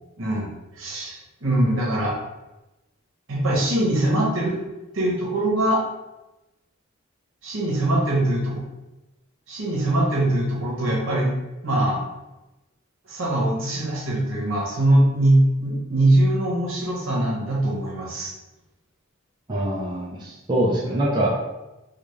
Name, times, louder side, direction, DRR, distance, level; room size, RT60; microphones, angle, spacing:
voice 1, 0.2-0.5 0.8-2.2 3.3-4.6 4.9-5.8 7.4-8.6 9.5-11.3 11.6-12.0 13.1-18.3, right 1 dB, 65° right, -3 dB, 0.9 m, -22 dB
voice 2, 19.5-21.3, right 1 dB, 20° right, -5 dB, 0.4 m, -24 dB
3.4 x 2.4 x 3.1 m, 1.0 s
head